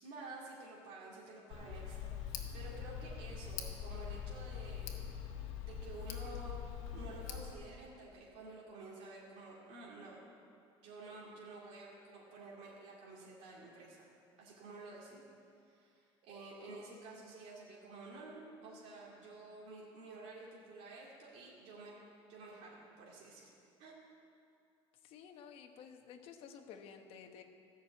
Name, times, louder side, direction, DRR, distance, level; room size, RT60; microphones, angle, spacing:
voice 1, 0.0-4.9 5.6-6.6 6.9-10.2 10.8-14.1 14.4-15.2 15.6-22.0 22.3-23.5 23.8-23.9, right 2 dB, 75° right, -5 dB, 2.8 m, -51 dB
Tick, 1.5-7.5, left 8 dB, 85° left, 1.4 m, -43 dB
voice 2, 25.0-27.4, left 7 dB, 60° left, 5 dB, 1.1 m, -53 dB
14.5 x 6.3 x 8.3 m, 2.4 s
cardioid pair, 160°, 11 cm